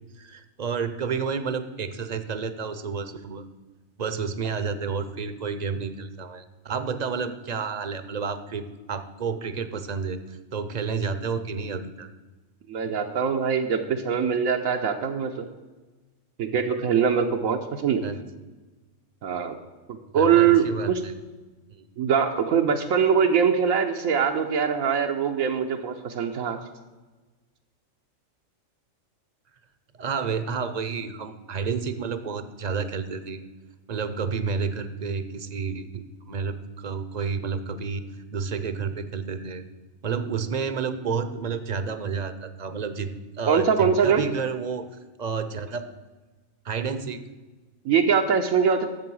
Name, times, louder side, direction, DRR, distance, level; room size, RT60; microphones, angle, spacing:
voice 1, 0.2-3.4 4.0-12.1 18.0-18.2 20.1-21.1 21.8-21.9 30.0-33.4 33.9-38.0 38.3-39.6 40.0-45.8 46.6-47.2, right 5 dB, 40° right, 11 dB, 0.7 m, -30 dB
voice 2, 12.7-15.5 16.4-18.0 19.2-19.5 19.9-21.0 22.0-26.6 43.5-44.2 47.8-48.9, right 7 dB, 85° right, 3 dB, 1.2 m, -22 dB
10.5 x 7.7 x 6.2 m, 1.2 s
omnidirectional pair, 1.4 m